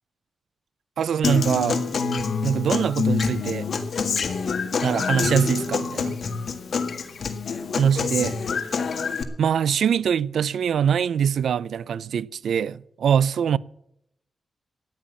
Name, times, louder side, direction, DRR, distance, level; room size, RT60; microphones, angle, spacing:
voice 1, 1.0-1.9 2.4-3.7 4.8-6.2 7.8-8.4 9.4-13.6, right 8 dB, 85° right, 0.4 m, -23 dB
Human voice / Acoustic guitar, 1.2-9.2, left 5 dB, 60° left, 1.7 m, -26 dB
14.0 x 10.0 x 7.2 m
wide cardioid pair, 105°, 0 cm